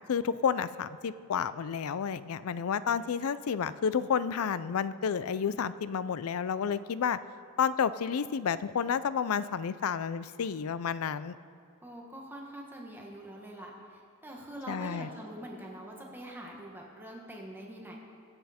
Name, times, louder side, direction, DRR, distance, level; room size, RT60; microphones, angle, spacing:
voice 1, 0.1-7.2 7.6-11.4 14.7-15.1, left 7 dB, 80° left, 15 dB, 0.4 m, -30 dB
voice 2, 11.8-18.0, right 1 dB, 10° right, -1 dB, 1.4 m, -44 dB
22.5 x 8.0 x 4.3 m, 2.5 s
head